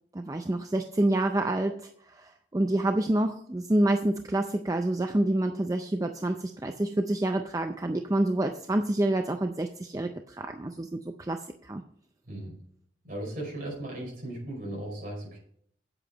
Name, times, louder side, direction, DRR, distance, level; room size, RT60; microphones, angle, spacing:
voice 1, 0.1-11.8, right 1 dB, 15° right, 6 dB, 0.4 m, -28 dB
voice 2, 13.0-15.4, right 1 dB, 45° right, -2 dB, 5.2 m, -37 dB
8.9 x 8.0 x 5.1 m, 0.66 s
head